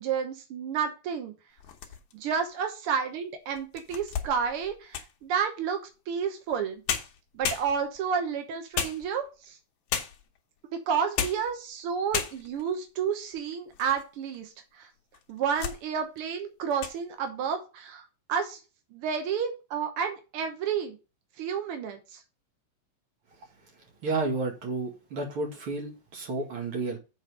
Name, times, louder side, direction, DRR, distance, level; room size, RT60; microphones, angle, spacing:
voice 1, 0.0-1.3 2.1-5.8 6.1-6.8 7.3-9.6 10.7-14.9 15.3-18.6 18.9-21.0 21.4-22.2, right 7 dB, 75° right, 1.3 m, -31 dB
sound 1, 1.6-2.3 2.9-3.0 3.6-5.2 6.5-6.6 6.9-8.1 8.7-9.4 9.9-10.4 11.0-11.5 11.8-11.9 12.1-12.7 13.2-14.0 14.3-14.4 15.1-15.8 16.2-16.4 16.7-17.0, left 8 dB, 65° left, 2.4 m, -34 dB
voice 2, 24.0-27.0, right 3 dB, 45° right, 2.4 m, -31 dB
7.9 x 4.3 x 6.5 m
omnidirectional pair, 4.0 m